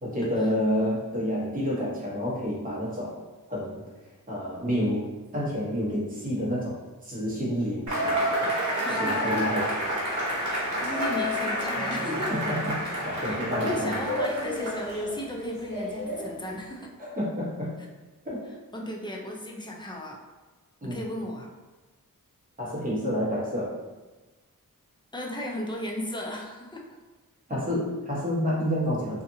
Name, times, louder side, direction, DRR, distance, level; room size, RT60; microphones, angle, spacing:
voice 1, 0.0-3.2 3.5-3.8 4.3-8.5 8.9-9.7 12.3-14.0 17.0-17.7 18.2-18.5 18.8-18.9 20.8-21.0 22.6-23.8 27.5-29.2, equal, 25° right, -7 dB, 0.9 m, -29 dB
Cheering / Applause / Crowd, 7.9-15.1, equal, 60° right, 1.0 m, -29 dB
voice 2, 8.8-9.3 10.4-12.3 13.3-16.9 18.7-20.2 20.8-21.5 25.1-26.8, left 1 dB, 15° left, -2 dB, 0.4 m, -35 dB
sound 1, 9.8-16.8, left 2 dB, 65° left, 1.3 m, -35 dB
2.7 x 2.4 x 2.6 m, 1.2 s
wide cardioid pair, 90°, 34 cm